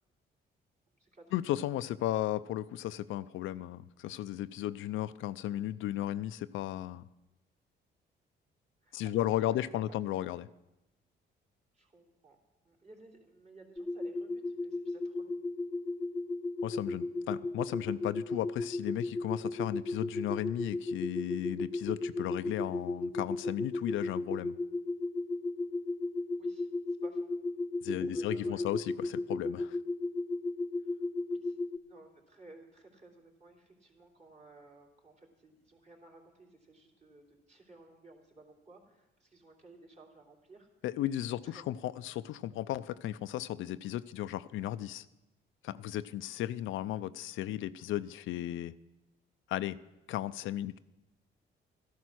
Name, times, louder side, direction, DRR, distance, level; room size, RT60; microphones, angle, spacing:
voice 1, 1.3-7.0 8.9-10.5 16.6-24.6 27.8-29.8 40.8-45.1 45.6-48.7 49.5-49.8 50.1-50.8, left 13 dB, 80° left, 14 dB, 0.5 m, -35 dB
voice 2, 8.8-9.1 9.5-10.0 11.7-12.4 12.6-15.3 26.4-26.7 27.0-27.3 27.9-28.7 30.8-31.0 31.3-31.6 31.9-40.7 41.4-41.9, right 2 dB, 35° right, 0 dB, 3.2 m, -56 dB
sound 1, 13.8-31.8, left 2 dB, 10° left, 0.4 m, -35 dB
13.5 x 11.5 x 6.2 m, 0.98 s
cardioid pair, 90°, 20 cm